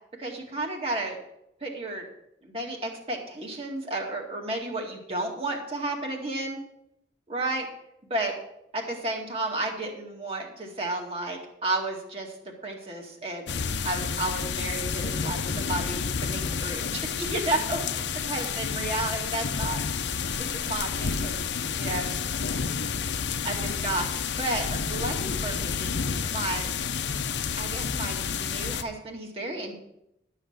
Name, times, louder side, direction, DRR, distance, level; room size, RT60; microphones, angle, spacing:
voice 1, 0.2-1.2 1.6-2.0 2.4-6.6 7.3-7.7 8.1-8.3 8.7-12.4 12.6-13.5 13.8-19.8 20.5-22.1 23.4-24.1 24.4-25.9 26.3-26.7 27.6-29.8, right 2 dB, 30° right, 0 dB, 2.2 m, -32 dB
sound 1, 13.5-28.8, left 6 dB, 85° left, 0.7 m, -30 dB
12.0 x 6.7 x 6.6 m, 0.80 s
head